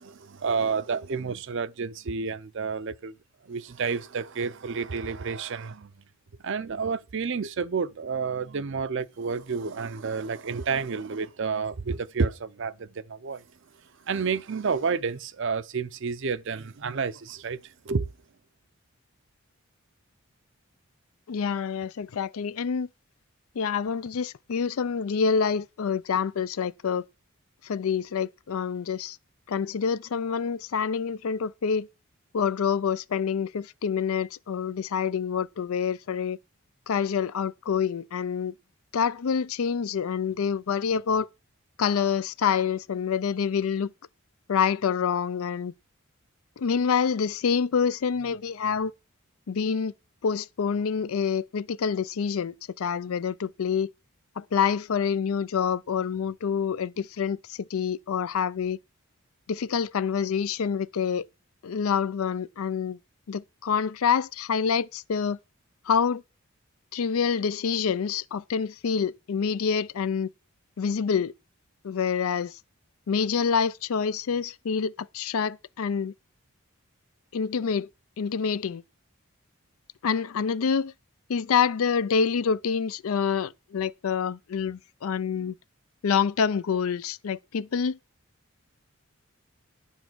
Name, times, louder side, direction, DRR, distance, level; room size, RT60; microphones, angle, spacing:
voice 1, 0.0-3.2 3.4-5.9 6.4-13.4 14.1-18.1, right 5 dB, 60° right, 0.5 m, -30 dB
voice 2, 21.3-22.9 23.6-27.0 27.6-29.2 29.5-31.9 32.3-36.4 36.9-38.5 38.9-41.3 41.8-43.9 44.5-45.7 46.6-48.9 49.5-49.9 50.2-53.9 54.4-58.8 59.5-61.3 61.6-63.0 63.3-65.4 65.9-66.2 66.9-70.3 70.8-71.3 71.8-72.6 73.1-76.1 77.3-77.9 78.2-78.8 80.0-80.9 81.3-85.6 86.0-88.0, left 6 dB, 80° left, 0.4 m, -27 dB
9.9 x 7.2 x 6.1 m
head